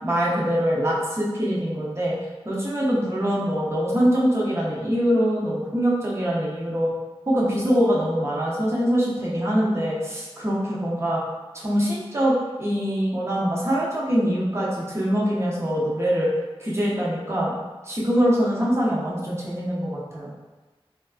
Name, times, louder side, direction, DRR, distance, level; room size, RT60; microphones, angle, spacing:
voice 1, 0.0-2.2 2.4-6.9 7.3-11.2 11.5-16.3 16.6-17.6 17.8-20.3, equal, 25° right, -6 dB, 0.7 m, -23 dB
3.3 x 2.4 x 2.3 m, 1.2 s
wide cardioid pair, 55°, 10 cm